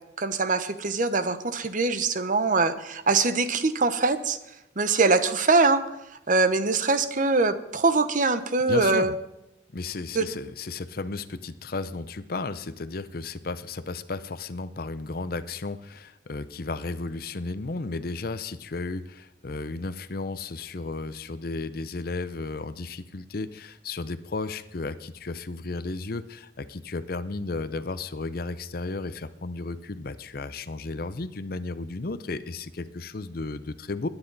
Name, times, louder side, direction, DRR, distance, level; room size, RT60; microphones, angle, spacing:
voice 1, 0.2-4.4 4.8-5.8 6.3-9.1 10.1-10.2, right 3 dB, 45° right, 10 dB, 0.9 m, -23 dB
voice 2, 8.7-9.1 9.7-34.1, left 3 dB, 55° left, 14 dB, 0.7 m, -34 dB
21.0 x 9.9 x 4.1 m, 0.89 s
head